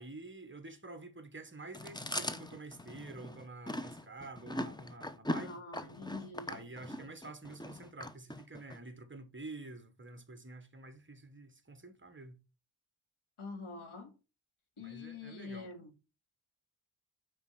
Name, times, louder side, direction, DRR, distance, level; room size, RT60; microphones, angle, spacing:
voice 1, 0.0-5.6 6.5-12.4 14.8-15.7, right 2 dB, 25° right, 1.4 m, -48 dB
Chewing mastication, 1.7-8.8, left 1 dB, 10° left, 0.8 m, -40 dB
voice 2, 5.4-6.7 13.4-14.1 14.8-15.9, left 4 dB, 80° left, 2.5 m, -45 dB
9.4 x 4.4 x 5.8 m
wide cardioid pair, 105°, 49 cm